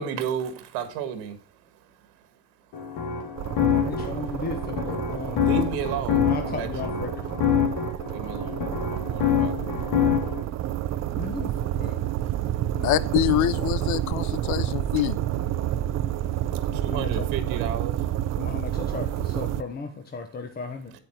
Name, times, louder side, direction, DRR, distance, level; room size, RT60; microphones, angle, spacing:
voice 1, 0.0-1.3 5.4-6.2 6.6-6.7 8.1-8.6 9.1-9.5 16.8-17.9, right 7 dB, 90° right, 1.8 m, -31 dB
sound 1, 2.7-10.4, left 8 dB, 90° left, 2.9 m, -26 dB
sound 2, 3.4-19.6, right 12 dB, 50° right, 0.6 m, -29 dB
voice 2, 3.7-5.4 6.1-7.3 7.6-7.9 11.1-12.0 12.7-12.9 16.7-17.3 18.4-20.9, left 4 dB, 25° left, 1.1 m, -36 dB
voice 3, 12.8-15.2, left 14 dB, 55° left, 0.6 m, -25 dB
9.1 x 8.6 x 4.4 m
cardioid pair, 125°, 35 cm